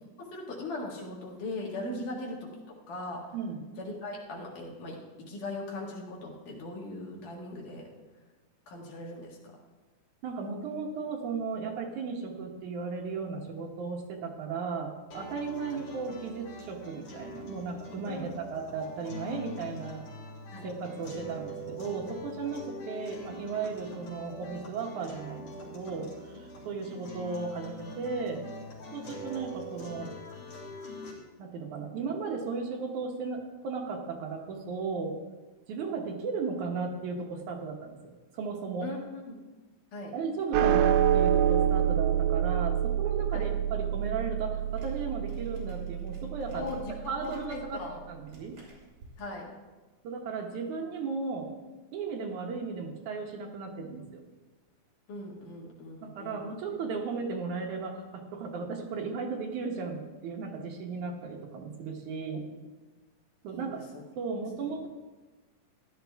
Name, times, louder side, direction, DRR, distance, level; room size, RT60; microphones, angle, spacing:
voice 1, 0.2-3.3 3.8-7.9 8.7-9.6 18.0-18.3 20.5-20.7 38.8-39.4 39.9-40.2 43.3-43.4 46.5-47.0 47.2-48.0 49.2-49.5 55.1-56.5 63.5-63.8 64.6-64.7, left 2 dB, 90° left, -2 dB, 3.4 m, -39 dB
voice 2, 10.2-20.1 20.6-28.4 28.9-30.1 31.4-35.2 35.7-38.9 40.1-46.7 47.1-47.8 48.1-48.6 50.0-51.5 51.9-54.2 56.0-62.4 63.4-63.8 64.2-64.9, right 5 dB, 75° right, 2 dB, 2.6 m, -35 dB
sound 1, 15.1-31.1, left 1 dB, 75° left, 4.4 m, -44 dB
sound 2, 40.5-47.1, right 10 dB, 90° right, 2.1 m, -27 dB
sound 3, 44.6-49.2, right 2 dB, 40° right, 3.4 m, -53 dB
14.5 x 11.0 x 3.5 m, 1.2 s
omnidirectional pair, 3.6 m